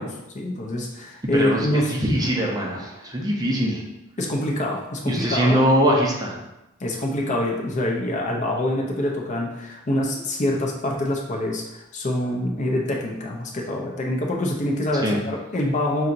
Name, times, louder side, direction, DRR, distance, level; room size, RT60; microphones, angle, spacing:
voice 1, 0.0-2.0 4.2-5.6 6.8-16.1, left 1 dB, 35° left, 0 dB, 0.5 m, -25 dB
voice 2, 1.3-3.8 5.1-6.4 15.0-15.2, equal, 20° right, -1 dB, 0.5 m, -22 dB
5.5 x 2.8 x 2.5 m, 0.95 s
head